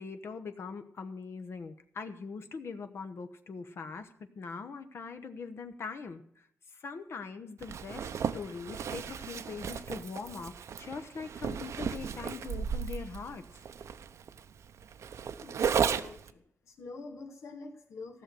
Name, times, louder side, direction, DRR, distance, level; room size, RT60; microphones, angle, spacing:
voice 1, 0.0-13.4, left 5 dB, 60° left, 8 dB, 0.9 m, -42 dB
Zipper (clothing), 7.6-16.3, right 7 dB, 80° right, 0.7 m, -35 dB
voice 2, 15.4-18.2, left 3 dB, 90° left, 2 dB, 2.4 m, -46 dB
15.5 x 6.8 x 7.7 m, 0.67 s
wide cardioid pair, 145°, 5 cm